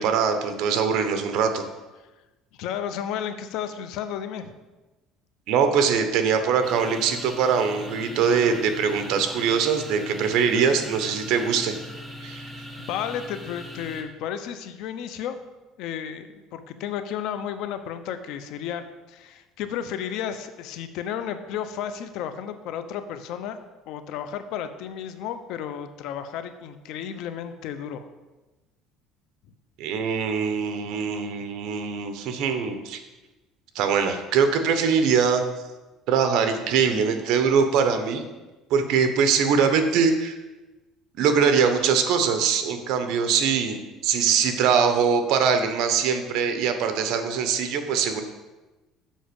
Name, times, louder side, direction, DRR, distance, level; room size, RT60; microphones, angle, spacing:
voice 1, 0.0-1.6 5.5-11.7 12.2-12.4 29.8-33.0 33.7-35.4 36.1-38.2 38.7-40.4 41.2-48.2, right 6 dB, 65° right, 7 dB, 1.1 m, -22 dB
voice 2, 2.6-4.6 12.8-15.4 15.8-28.0, left 9 dB, 70° left, 10 dB, 0.7 m, -33 dB
sound 1, 6.6-14.0, equal, ahead, 1.2 m, -40 dB
7.4 x 5.1 x 7.0 m, 1.1 s
cardioid pair, 140°, 0 cm